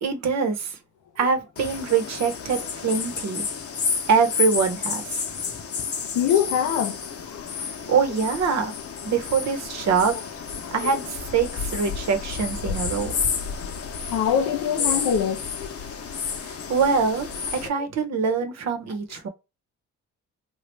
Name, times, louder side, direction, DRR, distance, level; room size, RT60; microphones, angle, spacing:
voice 1, 0.0-0.8 1.2-3.4 4.1-5.2 7.6-8.7 9.0-10.2 10.7-13.2 16.3-19.3, right 5 dB, 60° right, 0.9 m, -24 dB
sound 1, 1.6-17.7, left 6 dB, 50° left, 0.8 m, -31 dB
voice 2, 6.1-7.5 10.6-10.9 12.6-12.7 14.1-15.8 17.8-17.9 18.3-18.4, left 8 dB, 85° left, 0.8 m, -25 dB
3.0 x 2.3 x 3.2 m
cardioid pair, 90°, 30 cm